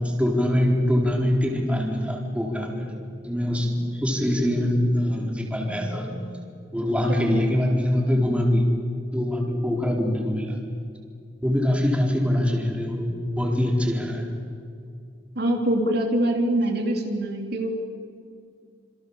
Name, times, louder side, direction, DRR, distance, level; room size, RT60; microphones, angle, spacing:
voice 1, 0.2-2.9 3.2-6.2 6.7-8.6 9.1-10.6 11.4-14.3, left 1 dB, 5° right, 0 dB, 4.2 m, -23 dB
voice 2, 7.1-7.4 15.4-17.7, right 1 dB, 60° right, 2 dB, 3.6 m, -24 dB
28.0 x 27.5 x 7.3 m, 2.3 s
head